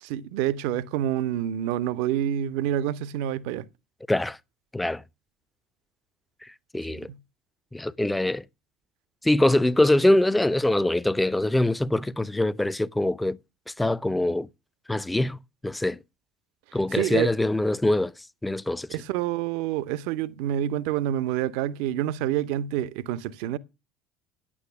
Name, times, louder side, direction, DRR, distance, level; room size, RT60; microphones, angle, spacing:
voice 1, 0.0-3.6 16.9-17.3 18.9-23.6, right 11 dB, 60° right, 0.6 m, -27 dB
voice 2, 6.7-7.1 7.7-8.4 9.2-13.4 13.8-14.5 14.9-16.0 16.7-18.1 18.4-18.9, left 1 dB, 5° left, 0.6 m, -23 dB
9.6 x 8.6 x 6.7 m
figure-of-eight pair, 65°, 0 cm